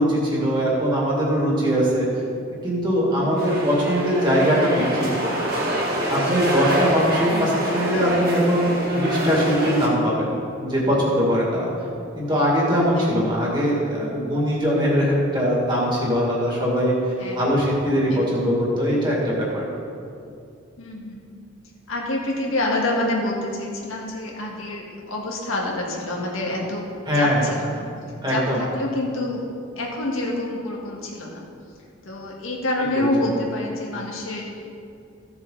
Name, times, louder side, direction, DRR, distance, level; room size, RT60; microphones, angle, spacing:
voice 1, 0.0-2.1 2.6-5.4 6.1-10.3 10.6-11.7 12.2-19.7 27.1-27.5 28.2-28.6 33.0-33.1, equal, 20° right, -5 dB, 2.3 m, -21 dB
sound 1, 3.4-9.9, right 1 dB, 50° right, 2.1 m, -25 dB
voice 2, 7.2-7.8 12.9-13.3 17.2-17.6 18.1-18.5 20.8-21.2 21.9-26.8 27.1-27.9 28.3-29.4 29.8-31.5 32.1-34.4, left 1 dB, 80° left, -2 dB, 1.9 m, -27 dB
15.0 x 7.0 x 4.0 m, 2.5 s
head